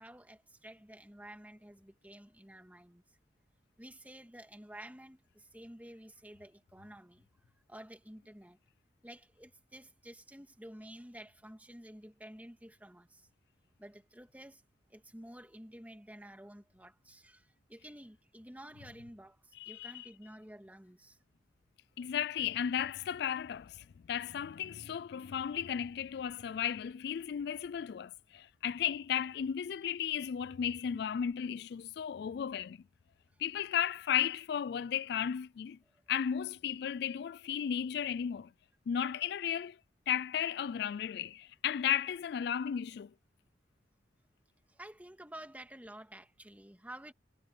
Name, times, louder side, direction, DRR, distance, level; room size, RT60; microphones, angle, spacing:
voice 1, 0.0-3.0 3.8-8.6 9.0-13.3 13.8-14.6 14.9-21.2 35.9-36.0 44.7-47.1, right 1 dB, 10° right, 2.5 m, -51 dB
voice 2, 19.6-20.1 22.0-32.8 33.4-35.8 36.1-38.5 38.9-39.8 40.1-43.1, left 9 dB, 65° left, 0.3 m, -34 dB
head